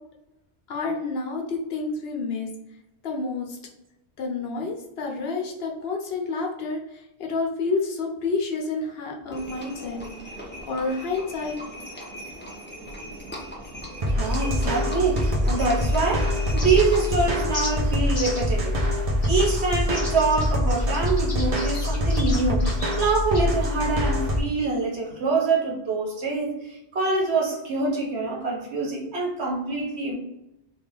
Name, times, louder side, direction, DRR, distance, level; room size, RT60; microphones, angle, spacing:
voice 1, 0.7-2.5 3.0-3.6 4.2-6.8 7.2-10.0 10.7-11.6, left 3 dB, 65° left, 1 dB, 0.9 m, -29 dB
Livestock farm animals working animals, 9.3-17.4, equal, 10° left, 0.7 m, -39 dB
sound 1, 14.0-24.4, left 1 dB, 40° right, 0.7 m, -24 dB
voice 2, 14.1-18.8 19.3-22.6 23.0-26.6 26.9-30.1, right 3 dB, 75° right, -2 dB, 1.3 m, -25 dB
sound 2, 16.6-17.1 17.5-17.7 18.2-18.5 19.2-19.4 19.9-23.5, left 2 dB, 50° left, 1.2 m, -35 dB
3.3 x 2.4 x 3.8 m, 0.87 s
omnidirectional pair, 1.1 m